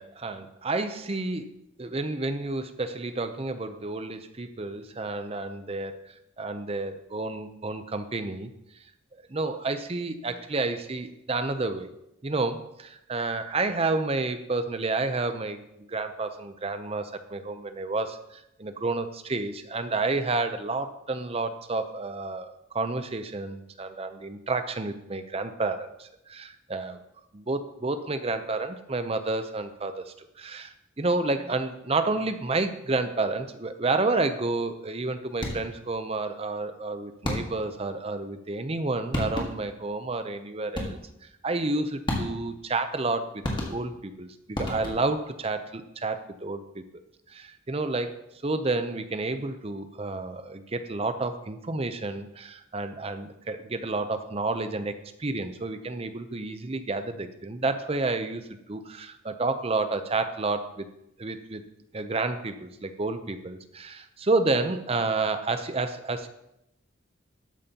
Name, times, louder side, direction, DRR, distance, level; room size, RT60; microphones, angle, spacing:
voice 1, 0.0-8.5 9.1-11.9 12.2-27.0 27.3-41.0 41.4-46.8 47.3-48.1 48.4-60.9 61.2-61.6 61.9-66.3, right 3 dB, 30° right, 9 dB, 0.6 m, -30 dB
sound 1, 35.3-35.8 37.2-37.8 38.8-38.9 39.1-39.8 40.7-41.2 42.1-42.6 43.4-44.1 44.5-45.2, left 1 dB, 25° left, 1.6 m, -32 dB
12.5 x 8.9 x 2.9 m, 0.84 s
head